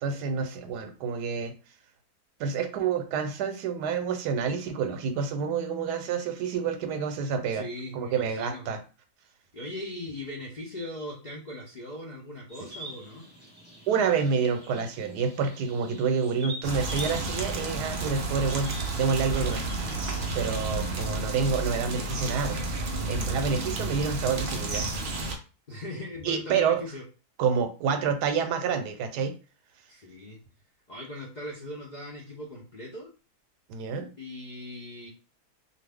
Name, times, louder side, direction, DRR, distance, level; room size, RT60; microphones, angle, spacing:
voice 1, 0.0-1.5 2.4-7.6 7.9-8.8 13.9-19.6 20.3-24.8 26.2-26.8 27.4-29.3 33.7-34.1, right 6 dB, 90° right, 7 dB, 1.2 m, -28 dB
voice 2, 7.5-8.6 9.5-13.3 20.6-21.1 25.7-27.0 29.9-30.4 30.9-33.1 34.2-35.1, left 1 dB, 70° left, -2 dB, 0.4 m, -39 dB
sound 1, 12.5-20.4, right 1 dB, 5° right, 1.0 m, -45 dB
sound 2, 16.6-25.3, right 2 dB, 65° right, 0.5 m, -31 dB
2.6 x 2.4 x 3.3 m, 0.34 s
omnidirectional pair, 1.7 m